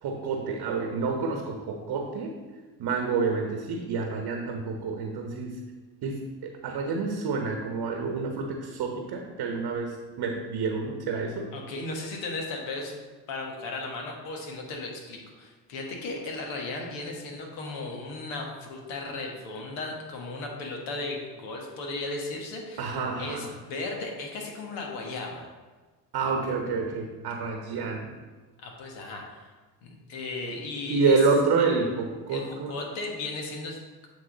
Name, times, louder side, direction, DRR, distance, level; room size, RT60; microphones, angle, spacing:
voice 1, 0.0-2.4 2.8-5.6 6.0-11.5 22.8-23.5 26.1-28.1 30.9-32.7, right 4 dB, 50° right, 2 dB, 1.0 m, -28 dB
voice 2, 11.5-13.0 13.3-25.5 28.6-29.5 29.8-31.2 32.3-34.1, left 2 dB, 70° left, 0 dB, 1.5 m, -36 dB
8.5 x 3.4 x 3.9 m, 1.3 s
hypercardioid pair, 60°, 49 cm